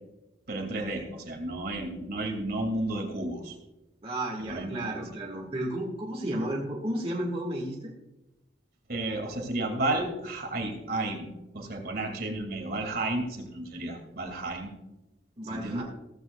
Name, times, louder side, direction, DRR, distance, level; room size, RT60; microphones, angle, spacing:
voice 1, 0.5-3.5 4.4-4.8 8.9-11.3 11.5-14.7 15.5-15.8, right 2 dB, 55° right, 3 dB, 2.4 m, -32 dB
voice 2, 4.0-7.9 15.4-15.8, right 1 dB, 35° right, -2 dB, 1.8 m, -33 dB
16.0 x 14.5 x 2.3 m, 0.99 s
head